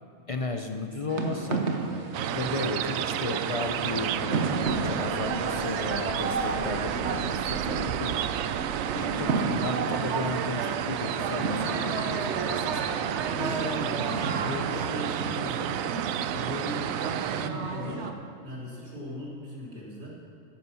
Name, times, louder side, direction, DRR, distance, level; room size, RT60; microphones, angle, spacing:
voice 1, 0.3-1.7 2.3-8.2 8.9-13.0, left 3 dB, 35° left, 5 dB, 0.5 m, -34 dB
sound 1, 1.1-18.1, right 4 dB, 60° right, 1.2 m, -32 dB
sound 2, 2.1-17.5, right 10 dB, 80° right, 1.0 m, -31 dB
voice 2, 8.9-9.3 13.1-15.8 16.2-16.9 17.2-18.1 18.4-20.2, equal, 35° right, -5 dB, 3.1 m, -38 dB
14.0 x 10.0 x 5.6 m, 2.5 s
omnidirectional pair, 1.4 m